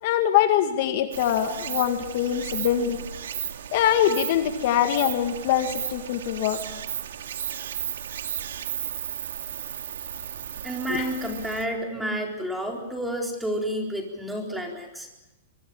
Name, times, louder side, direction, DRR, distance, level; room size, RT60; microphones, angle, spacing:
voice 1, 0.0-3.0 3.7-6.6 10.9-11.1, left 10 dB, 45° left, 6 dB, 2.0 m, -23 dB
Stream, 1.1-11.7, right 9 dB, 80° right, 2.2 m, -34 dB
voice 2, 10.6-15.1, equal, 5° right, 1 dB, 4.2 m, -30 dB
24.5 x 23.5 x 7.2 m, 0.96 s
hypercardioid pair, 165°, 0 cm